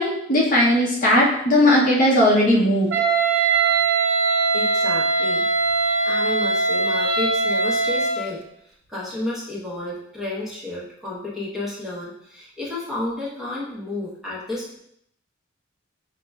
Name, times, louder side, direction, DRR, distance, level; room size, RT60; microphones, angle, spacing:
voice 1, 0.0-2.9, left 1 dB, 45° left, -4 dB, 0.8 m, -17 dB
Wind instrument woodwind instrument, 2.9-8.3, right 4 dB, 60° right, 0.5 m, -21 dB
voice 2, 4.5-5.5 6.1-8.4 8.9-14.8, left 2 dB, ahead, -7 dB, 1.0 m, -31 dB
5.3 x 2.9 x 2.3 m, 0.71 s
head